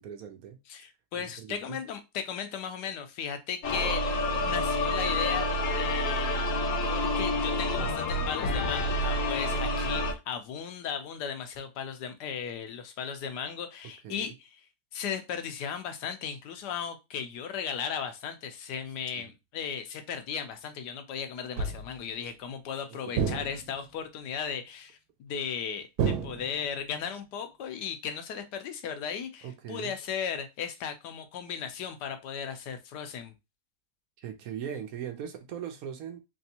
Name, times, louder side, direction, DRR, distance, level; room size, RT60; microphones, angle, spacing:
voice 1, 0.0-0.6 1.2-1.8 14.0-14.3 19.2-19.3 23.1-23.3 29.4-29.9 34.2-36.2, right 8 dB, 65° right, 1.0 m, -40 dB
voice 2, 0.7-5.5 5.8-6.5 6.8-14.5 14.9-33.3, left 7 dB, 80° left, 1.2 m, -36 dB
sound 1, 3.6-10.1, left 1 dB, 60° left, 0.9 m, -28 dB
sound 2, 21.6-22.1 23.1-23.9 26.0-26.9, right 6 dB, 85° right, 1.3 m, -31 dB
3.5 x 3.0 x 2.8 m
omnidirectional pair, 1.8 m